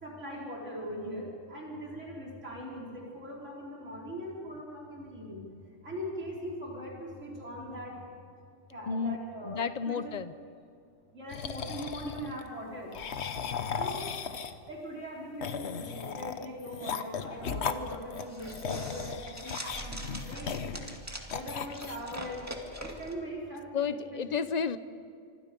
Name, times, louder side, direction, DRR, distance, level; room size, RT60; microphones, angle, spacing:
voice 1, 0.0-5.4 5.8-7.9 8.7-10.1 11.1-12.9 13.8-14.1 14.7-20.7 21.3-22.4 22.8-24.4, equal, 75° right, -3 dB, 5.2 m, -41 dB
voice 2, 8.9-10.3 23.7-24.8, left 6 dB, 40° left, 13 dB, 0.8 m, -32 dB
sound 1, 11.3-12.4 12.9-14.7 15.4-21.0 21.3-22.2, left 6 dB, 60° left, 1.2 m, -36 dB
sound 2, 17.4-23.1, right 1 dB, 15° right, 2.1 m, -43 dB
26.0 x 25.5 x 5.3 m, 2.3 s
omnidirectional pair, 1.3 m